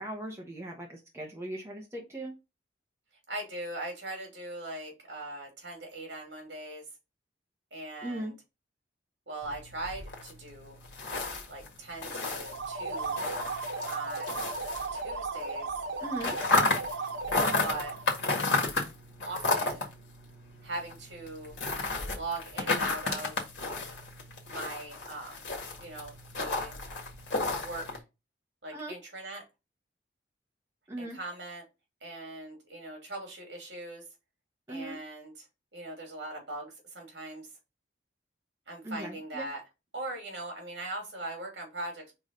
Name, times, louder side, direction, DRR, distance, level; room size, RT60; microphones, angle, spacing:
voice 1, 0.0-2.4 8.0-8.3 16.0-16.4 28.7-28.9 30.9-31.2 34.7-35.0 38.8-39.5, right 1 dB, 15° right, -1 dB, 1.1 m, -38 dB
voice 2, 3.3-6.8 7.7-8.3 9.3-10.8 11.5-13.2 13.9-14.4 14.9-15.7 17.6-18.0 19.2-19.9 20.6-21.6 22.1-23.4 24.5-25.5 25.8-26.8 27.5-28.0 28.6-29.4 31.0-31.7 32.0-34.0 34.7-35.5 35.7-37.5 38.7-39.6 39.9-42.1, right 2 dB, 65° right, 2 dB, 2.8 m, -40 dB
sound 1, 9.4-15.4 15.7-28.0, left 3 dB, 70° left, 1.8 m, -33 dB
sound 2, 12.4-18.1, right 3 dB, 85° right, 1.1 m, -35 dB
4.8 x 3.9 x 5.2 m, 0.26 s
head